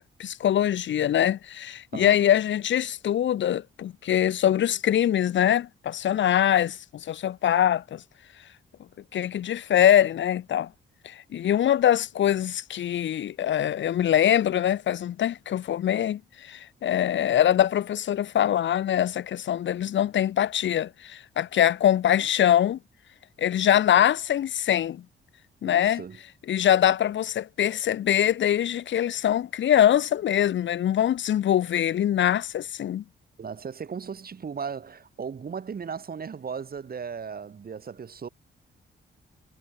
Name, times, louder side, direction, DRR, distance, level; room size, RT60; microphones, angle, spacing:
voice 1, 0.2-6.8 7.1-8.0 9.1-10.7 11.0-22.8 23.4-25.0 25.6-26.0 26.5-33.0, left 10 dB, 70° left, 0.9 m, -23 dB
voice 2, 1.9-2.3 25.6-26.2 33.4-38.3, right 6 dB, 50° right, 6.9 m, -36 dB
cardioid pair, 105°, 20 cm